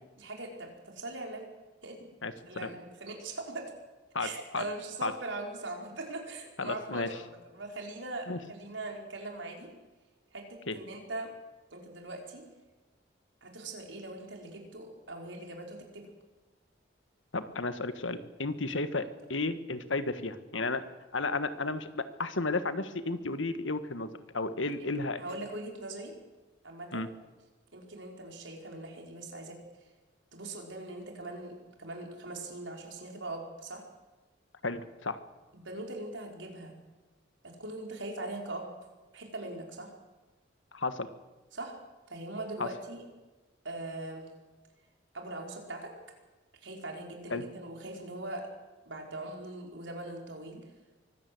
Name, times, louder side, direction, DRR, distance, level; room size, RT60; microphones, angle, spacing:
voice 1, 0.2-1.4 1.8-2.1 2.5-3.7 4.2-9.7 10.3-11.3 11.7-12.5 13.4-16.1 24.6-24.9 25.2-26.2 26.6-27.0 27.7-29.6 30.3-33.8 35.5-36.7 37.4-38.7 39.1-39.9 41.5-41.8 42.1-43.0 43.6-44.2 45.1-45.9 46.6-48.5 48.9-50.6, right 2 dB, 80° right, 2 dB, 5.3 m, -41 dB
voice 2, 2.2-2.7 4.1-4.6 5.0-5.1 6.6-7.2 8.3-8.4 10.7-10.8 17.3-20.8 21.1-25.2 26.9-27.1 34.6-35.2 40.7-41.1 42.6-42.7 47.3-47.4, left 3 dB, 85° left, 11 dB, 1.6 m, -33 dB
24.0 x 16.5 x 7.9 m, 1.2 s
head